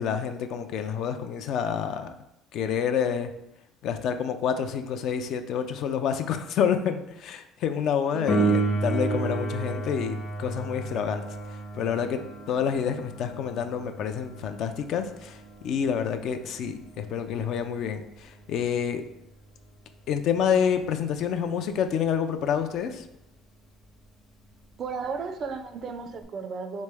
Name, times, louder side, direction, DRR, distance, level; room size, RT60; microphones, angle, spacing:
voice 1, 0.0-2.1 2.5-3.3 3.8-11.2 11.5-12.2 12.5-19.0 20.1-23.1, left 7 dB, 65° left, 8 dB, 0.3 m, -28 dB
voice 2, 8.1-8.7 24.8-26.8, right 4 dB, 45° right, 8 dB, 0.4 m, -34 dB
Piano, 8.3-18.7 26.2-26.3, right 2 dB, 35° left, 0.7 m, -32 dB
3.3 x 3.1 x 3.4 m, 0.85 s
cardioid pair, 110°, 0 cm